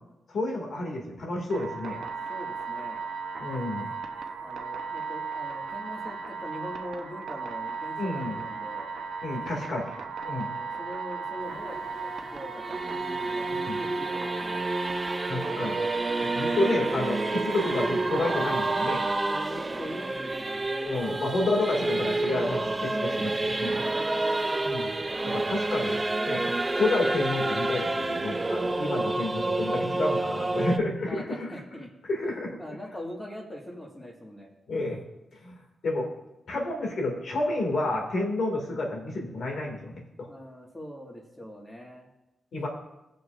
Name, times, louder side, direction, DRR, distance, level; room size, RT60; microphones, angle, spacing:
voice 1, 0.3-2.0 3.4-3.9 8.0-8.4 9.2-10.0 10.2-10.5 13.7-13.8 15.2-15.8 16.2-19.1 20.8-23.8 24.6-31.5 32.1-32.6 34.7-35.0 35.4-35.6 35.8-36.1 36.5-40.3 42.5-42.7, left 2 dB, 70° left, 0 dB, 2.4 m, -30 dB
sound 1, 1.5-19.1, right 5 dB, 90° right, 0.8 m, -36 dB
voice 2, 2.3-3.0 4.4-8.9 10.2-14.7 19.3-20.7 23.8-24.3 31.0-31.9 32.6-34.5 40.3-42.1, equal, 15° left, -2 dB, 1.9 m, -42 dB
Singing / Musical instrument, 11.4-30.8, right 2 dB, 25° right, 0.5 m, -29 dB
19.0 x 6.6 x 2.6 m, 0.93 s
cardioid pair, 95°, 0 cm